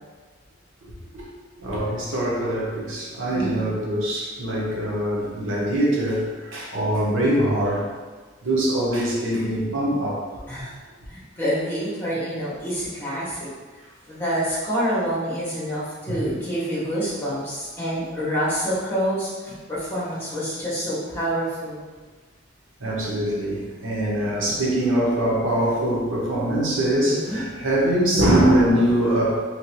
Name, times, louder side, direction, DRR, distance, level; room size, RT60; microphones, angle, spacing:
voice 1, 1.6-7.9 8.4-10.2 16.1-16.4 22.8-29.4, right 1 dB, 85° right, -4 dB, 0.9 m, -23 dB
voice 2, 3.3-3.7 10.5-10.7 11.1-13.5 14.1-21.8 27.0-27.4, equal, 10° left, -9 dB, 1.1 m, -27 dB
3.4 x 2.9 x 3.0 m, 1.4 s
head